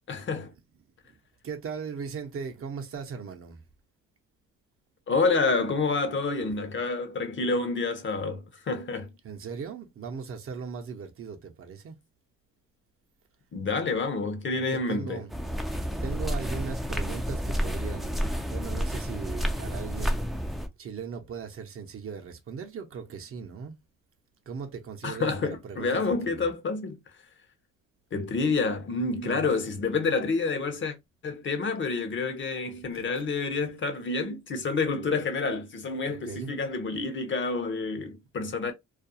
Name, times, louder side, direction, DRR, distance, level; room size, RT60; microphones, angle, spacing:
voice 1, 0.1-0.5 5.1-9.1 13.5-15.2 25.0-27.0 28.1-30.9 31.2-38.7, left 4 dB, 40° left, 0.7 m, -28 dB
voice 2, 1.4-3.6 9.2-12.0 14.5-15.3 15.7-20.3 20.8-23.8 24.5-26.5 29.2-29.5 32.9-33.0 36.0-36.5, right 6 dB, 45° right, 0.7 m, -39 dB
sound 1, 15.3-20.7, equal, ahead, 0.4 m, -30 dB
2.4 x 2.3 x 2.6 m
cardioid pair, 90°, 30 cm